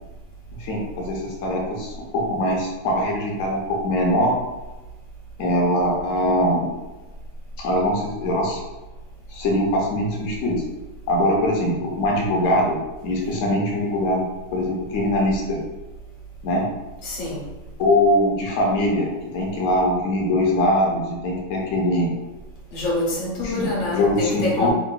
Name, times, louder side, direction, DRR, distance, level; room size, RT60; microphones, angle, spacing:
voice 1, 0.6-4.3 5.4-6.7 7.6-8.6 9.3-10.6 11.1-14.2 14.5-15.6 16.4-16.6 17.8-19.1 19.3-22.1 23.4-24.7, left 1 dB, 65° left, -2 dB, 0.7 m, -22 dB
voice 2, 17.0-17.5 22.7-24.7, left 2 dB, 85° left, -5 dB, 1.7 m, -26 dB
3.8 x 2.4 x 2.3 m, 1.1 s
omnidirectional pair, 2.1 m